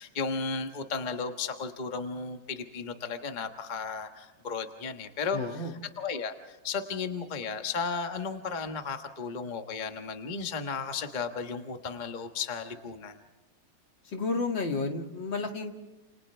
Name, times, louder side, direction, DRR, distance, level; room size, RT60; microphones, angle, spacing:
voice 1, 0.0-5.7 6.0-13.2, left 5 dB, 25° left, 6 dB, 1.3 m, -34 dB
voice 2, 5.3-5.7 14.0-15.8, left 3 dB, 65° left, 3 dB, 2.9 m, -31 dB
30.0 x 29.0 x 3.4 m, 1.2 s
omnidirectional pair, 2.2 m